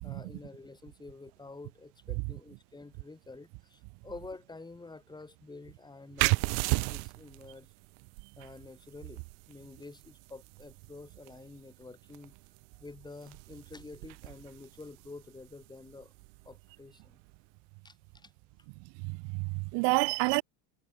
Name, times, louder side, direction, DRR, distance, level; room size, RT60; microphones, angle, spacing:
voice 1, 0.0-7.7 8.4-12.3 12.8-16.1 16.4-17.2 17.8-18.3, left 3 dB, 10° left, 5.2 m, -49 dB
sound 1, 6.2-17.5, right 40 dB or more, 75° right, 1.6 m, -38 dB
voice 2, 19.0-20.4, right 32 dB, 60° right, 0.9 m, -29 dB
cardioid pair, 170°, 49 cm